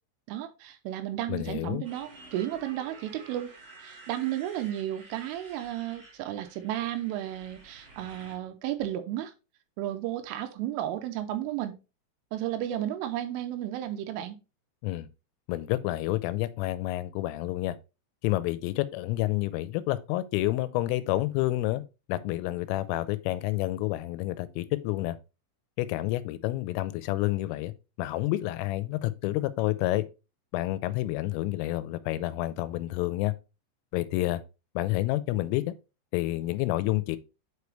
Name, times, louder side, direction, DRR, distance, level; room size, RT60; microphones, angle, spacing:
voice 1, 0.3-3.5 3.8-9.3 9.8-11.8 12.3-14.4, right 12 dB, 80° right, 3.2 m, -33 dB
voice 2, 1.3-1.8 14.8-15.1 15.5-17.8 18.2-21.8 22.1-25.2 25.8-27.7 28.0-30.0 30.5-33.3 33.9-34.4 34.8-35.6 36.1-37.2, left 17 dB, 85° left, 3.1 m, -29 dB
Motorcycle, 1.8-8.4, right 4 dB, 30° right, 4.6 m, -51 dB
8.1 x 4.9 x 3.2 m
omnidirectional pair, 5.8 m